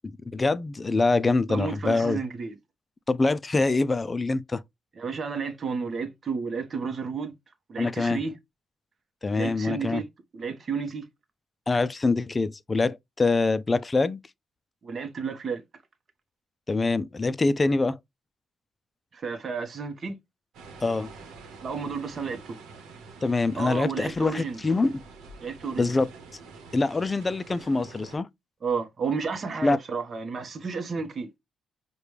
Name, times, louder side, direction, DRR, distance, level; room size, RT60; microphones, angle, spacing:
voice 1, 0.3-2.2 3.1-4.6 7.8-8.2 9.2-10.0 11.7-14.2 16.7-18.0 20.8-21.1 23.2-24.9 25.8-26.1 26.7-28.3 29.6-29.8, left 3 dB, 25° left, 0.3 m, -24 dB
voice 2, 1.5-2.6 5.0-7.3 7.7-8.3 9.3-10.1 10.3-11.0 14.8-15.6 19.1-20.1 21.6-22.6 23.6-24.6 25.4-25.9 28.6-31.3, right 5 dB, 45° right, 0.8 m, -32 dB
sound 1, 20.5-28.2, right 4 dB, 85° right, 0.9 m, -47 dB
4.9 x 2.2 x 3.0 m
cardioid pair, 90°, 0 cm